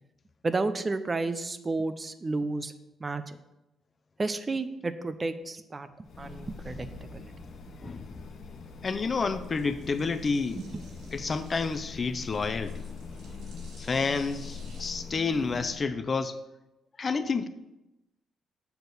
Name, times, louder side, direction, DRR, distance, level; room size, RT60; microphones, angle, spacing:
voice 1, 0.4-2.7 3.0-3.4 4.2-6.9 7.1-7.3 7.8-7.9 10.6-10.7, right 3 dB, 25° right, 11 dB, 0.6 m, -31 dB
sound 1, 6.0-15.9, left 4 dB, 65° left, 0.9 m, -43 dB
sound 2, 6.0-14.9, right 3 dB, 85° right, 2.7 m, -58 dB
voice 2, 7.8-8.2 8.8-10.6 11.1-12.9 13.8-16.4 17.0-17.5, left 4 dB, 40° left, 11 dB, 0.5 m, -29 dB
6.9 x 4.2 x 6.6 m, 0.94 s
cardioid pair, 90°, 0 cm